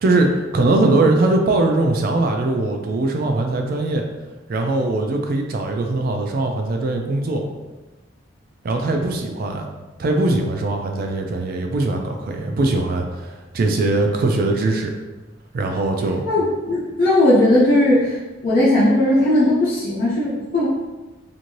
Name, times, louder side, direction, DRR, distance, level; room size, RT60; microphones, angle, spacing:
voice 1, 0.0-4.1 4.5-7.4 8.6-9.7 10.0-15.0 15.5-16.2, right 2 dB, 50° right, 3 dB, 0.3 m, -21 dB
voice 2, 16.3-18.2 18.4-20.7, left 1 dB, 50° left, -9 dB, 0.8 m, -17 dB
3.1 x 2.6 x 2.6 m, 1.1 s
head